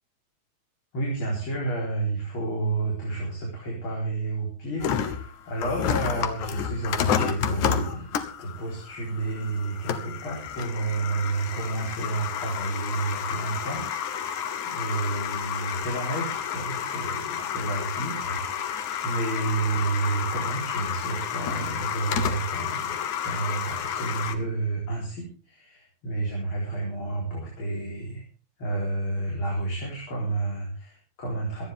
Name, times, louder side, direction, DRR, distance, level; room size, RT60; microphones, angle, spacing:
voice 1, 0.9-8.1 8.4-28.2 28.6-31.7, right 3 dB, 45° left, -3 dB, 5.0 m, -30 dB
sound 1, 4.8-24.3, left 8 dB, 90° left, 2.6 m, -31 dB
25.0 x 9.9 x 3.6 m, 0.33 s
omnidirectional pair, 3.3 m